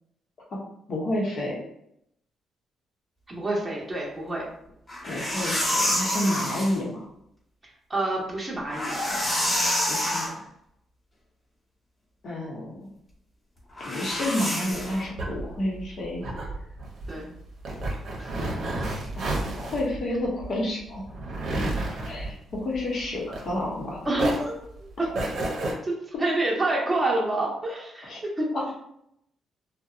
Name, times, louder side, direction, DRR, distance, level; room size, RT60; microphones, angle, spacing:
voice 1, 0.9-1.6 5.0-7.1 9.9-10.4 12.2-12.9 13.8-16.3 19.2-21.0 21.5-24.1 28.1-28.2 28.5-28.8, left 1 dB, 60° left, -3 dB, 0.9 m, -30 dB
voice 2, 3.3-4.4 7.9-9.0 17.1-17.3 18.2-18.4 18.7-19.0 24.0-25.1 25.8-28.5, right 2 dB, 15° right, -4 dB, 0.9 m, -28 dB
sound 1, 4.9-6.8 8.6-10.3 13.8-15.0, left 1 dB, 25° left, 1.1 m, -27 dB
sound 2, 14.8-23.8 24.1-25.7, right 2 dB, 65° right, 0.6 m, -31 dB
2.7 x 2.1 x 2.4 m, 0.75 s
cardioid pair, 110°, 0 cm